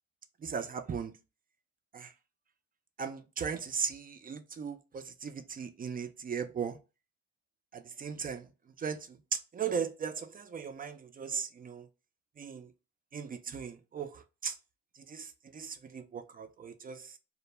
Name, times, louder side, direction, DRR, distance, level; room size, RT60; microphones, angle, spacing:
voice 1, 0.4-1.1 1.9-2.1 3.0-6.8 7.7-8.5 8.8-11.9 12.4-12.7 13.1-14.5 15.1-17.1, right 6 dB, 30° right, 0.4 m, -38 dB
2.1 x 2.1 x 3.1 m
cardioid pair, 90°, 30 cm